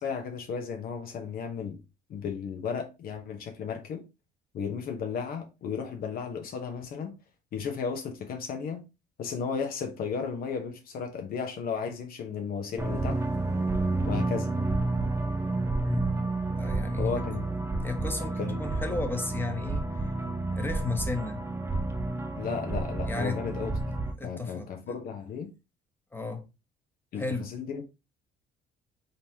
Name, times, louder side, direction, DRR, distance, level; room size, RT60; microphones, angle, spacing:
voice 1, 0.0-1.8 2.1-4.1 4.5-7.2 7.5-8.9 9.2-13.2 14.0-14.5 17.0-17.4 18.4-18.6 22.4-24.0 24.2-25.5 27.1-27.9, left 6 dB, 60° left, 1.0 m, -34 dB
sound 1, 12.8-24.1, right 2 dB, 15° right, 0.8 m, -30 dB
voice 2, 15.8-16.2 16.6-17.2 17.8-19.9 20.5-21.4 23.1-23.4 24.2-25.0 26.1-26.5 27.1-27.5, left 3 dB, 10° left, 0.9 m, -34 dB
4.0 x 3.5 x 2.9 m
cardioid pair, 110°, 17 cm